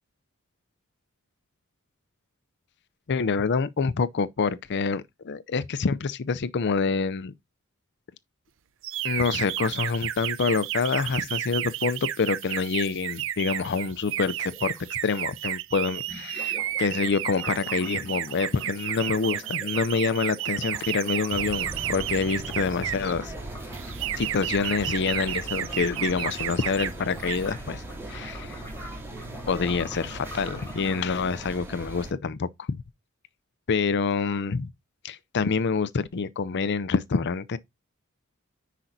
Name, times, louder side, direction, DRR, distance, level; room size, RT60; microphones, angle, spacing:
voice 1, 3.1-7.3 9.0-23.3 24.2-28.6 29.4-32.8 33.7-34.7 35.0-37.6, left 5 dB, 55° left, 0.5 m, -27 dB
sound 1, 8.8-23.1 23.7-26.9 27.2-27.5, right 12 dB, 60° right, 0.6 m, -32 dB
sound 2, 14.5-14.8 16.1-31.1, right 1 dB, 10° left, 5.3 m, -45 dB
sound 3, 21.3-32.1, right 1 dB, 10° right, 2.9 m, -39 dB
10.0 x 5.0 x 2.7 m
head